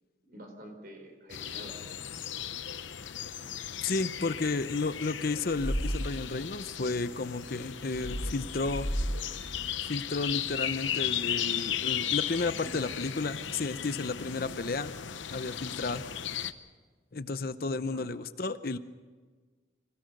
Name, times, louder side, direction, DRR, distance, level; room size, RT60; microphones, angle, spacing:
voice 1, 0.3-1.8 12.4-12.9 17.7-18.1, right 1 dB, 50° right, 4 dB, 4.1 m, -48 dB
sound 1, 1.3-16.5, left 10 dB, 80° left, 0.8 m, -36 dB
voice 2, 3.8-8.9 9.8-14.9 15.3-16.0 17.1-18.8, left 3 dB, 50° left, 12 dB, 0.7 m, -32 dB
sound 2, 5.5-6.1 7.9-9.1 9.4-9.6, equal, 30° left, 4.0 m, -32 dB
25.5 x 17.0 x 6.6 m, 1.4 s
head